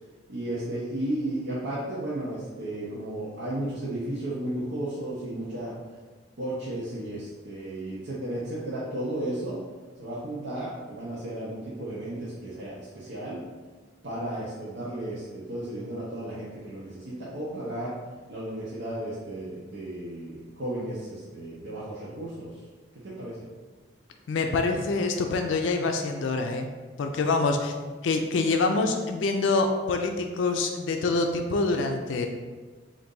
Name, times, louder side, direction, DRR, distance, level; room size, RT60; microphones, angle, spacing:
voice 1, 0.3-5.7 6.4-9.6 10.0-13.4 14.0-17.9 18.3-22.6 23.0-23.5 27.3-27.4, right 1 dB, 70° right, -8 dB, 0.7 m, -34 dB
voice 2, 24.3-26.7 27.0-27.7 28.0-32.3, left 3 dB, 85° left, 4 dB, 0.4 m, -25 dB
3.9 x 2.6 x 3.7 m, 1.4 s
head